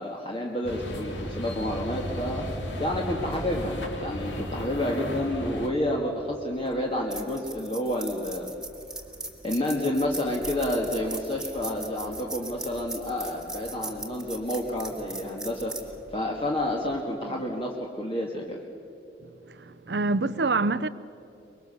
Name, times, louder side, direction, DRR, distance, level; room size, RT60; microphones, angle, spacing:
voice 1, 0.0-2.4 2.8-8.5 9.4-15.7 16.1-18.6, left 1 dB, 30° left, 2.0 m, -29 dB
sound 1, 0.7-5.7, equal, 80° left, 3.0 m, -34 dB
sound 2, 6.6-17.0, right 2 dB, 5° right, 1.9 m, -40 dB
voice 2, 19.9-20.9, right 3 dB, 65° right, 0.7 m, -25 dB
24.5 x 22.5 x 7.0 m
head